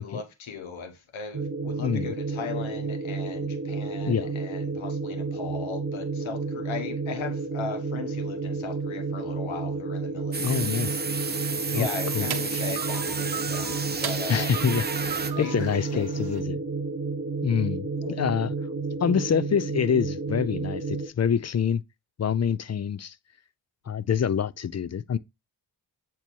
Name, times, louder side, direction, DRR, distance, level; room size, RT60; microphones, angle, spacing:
voice 1, 0.0-10.9 11.7-14.5 15.4-16.2 17.9-18.2, left 6 dB, 85° left, 1.2 m, -38 dB
sound 1, 1.3-21.1, right 4 dB, 35° right, 1.4 m, -31 dB
voice 2, 1.8-2.1 4.0-4.3 10.4-11.0 11.7-11.9 12.1-12.3 14.3-16.6 17.4-17.9 18.2-18.5 19.0-21.8 22.2-23.1 23.9-25.2, left 7 dB, 35° left, 0.5 m, -26 dB
sound 2, 10.3-15.3, right 4 dB, 20° right, 0.7 m, -32 dB
sound 3, 11.2-16.4, right 9 dB, 55° right, 0.8 m, -39 dB
8.0 x 3.0 x 4.5 m
cardioid pair, 40°, 46 cm